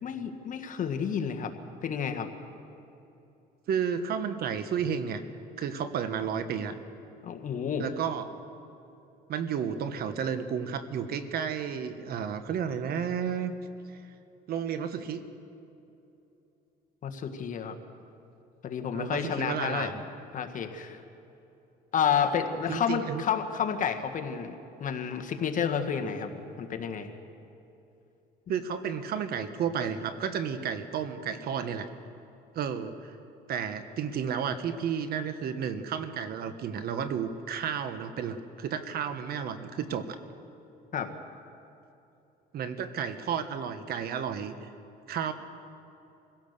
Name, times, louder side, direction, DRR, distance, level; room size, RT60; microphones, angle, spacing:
voice 1, 0.0-1.5 1.8-2.3 7.2-7.9 17.0-17.8 18.6-19.9 20.3-21.0 21.9-24.6 24.8-27.1 40.9-41.1, left 7 dB, 50° left, 6 dB, 1.7 m, -30 dB
voice 2, 3.7-5.2 5.6-6.7 7.8-8.3 9.3-13.5 13.9-14.0 14.5-15.2 18.9-20.0 22.7-23.2 28.5-31.9 32.5-33.2 33.5-40.2 42.5-44.7 45.1-45.3, right 7 dB, 65° right, 9 dB, 1.4 m, -32 dB
25.0 x 16.5 x 6.8 m, 2.9 s
cardioid pair, 110°, 17 cm